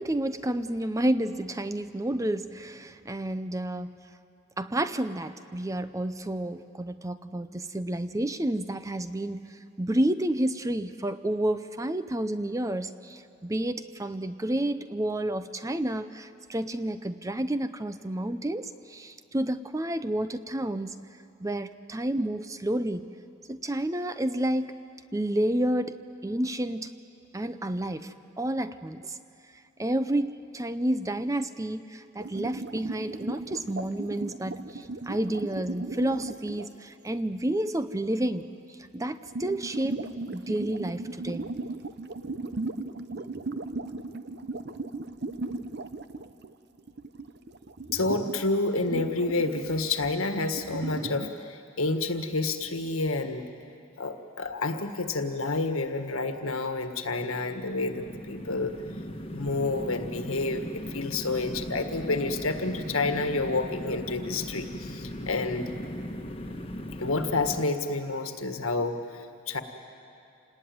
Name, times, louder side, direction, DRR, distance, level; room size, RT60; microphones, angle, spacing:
voice 1, 0.0-3.9 4.6-21.1 21.4-23.1 23.5-24.8 25.1-26.9 27.3-29.2 29.8-40.1 40.3-41.5 43.3-43.4, right 1 dB, 15° right, 12 dB, 0.5 m, -30 dB
sound 1, 32.2-36.7 39.0-46.5 46.8-48.5 48.9-51.3, right 2 dB, 50° right, 0.8 m, -37 dB
voice 2, 47.9-53.4 54.0-58.7 59.3-65.7 67.0-69.6, left 3 dB, 75° left, 6 dB, 1.7 m, -29 dB
sound 2, 57.2-67.6, equal, 25° left, 1.3 m, -38 dB
28.0 x 19.0 x 9.4 m, 2.6 s
head